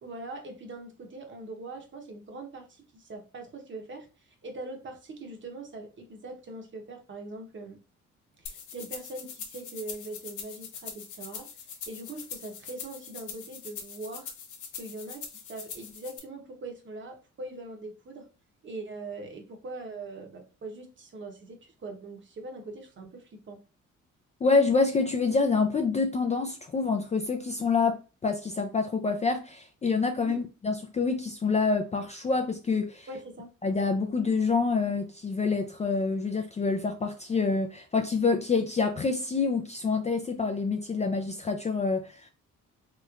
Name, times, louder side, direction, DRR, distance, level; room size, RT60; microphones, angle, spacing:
voice 1, 0.0-7.8 8.4-14.3 14.7-18.3 18.6-23.6 30.3-30.4 33.1-33.5, right 2 dB, 40° right, 0.9 m, -42 dB
sound 1, 8.5-16.2, left 6 dB, 80° left, 0.7 m, -42 dB
voice 2, 24.4-33.1 33.6-42.3, left 4 dB, 25° left, 0.3 m, -27 dB
3.1 x 3.0 x 2.3 m
cardioid pair, 90°, 30 cm